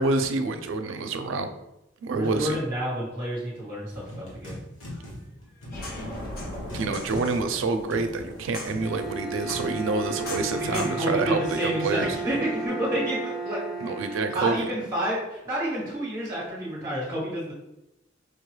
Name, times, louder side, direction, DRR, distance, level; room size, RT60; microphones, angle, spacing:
voice 1, 0.0-1.5 2.0-2.6 6.7-12.2 13.8-14.6, right 3 dB, 85° right, 7 dB, 0.4 m, -27 dB
voice 2, 2.1-4.6 10.5-17.5, right 1 dB, 15° right, -6 dB, 1.1 m, -30 dB
sound 1, 3.9-12.7, left 1 dB, 90° left, 1.3 m, -43 dB
sound 2, 5.7-10.9, left 1 dB, 50° left, 0.8 m, -39 dB
Bowed string instrument, 8.7-14.9, right 4 dB, 5° left, 0.8 m, -34 dB
4.8 x 2.2 x 3.1 m, 0.92 s
head